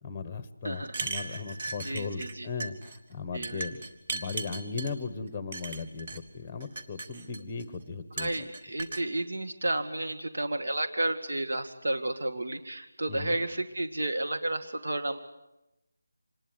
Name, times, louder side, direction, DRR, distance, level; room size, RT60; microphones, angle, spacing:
voice 1, 0.0-3.8 4.1-8.3 13.1-13.4, left 4 dB, 10° left, 13 dB, 1.1 m, -37 dB
voice 2, 0.6-1.0 1.8-2.5 3.3-3.7 8.2-15.2, right 1 dB, 60° right, 7 dB, 2.1 m, -32 dB
sound 1, 0.8-2.3 2.6-3.0 3.4-4.9 5.5-6.2 6.6-7.6 8.2-9.0, right 3 dB, 25° right, 2.1 m, -37 dB
26.5 x 20.5 x 9.4 m, 0.90 s
figure-of-eight pair, 175°, 0 cm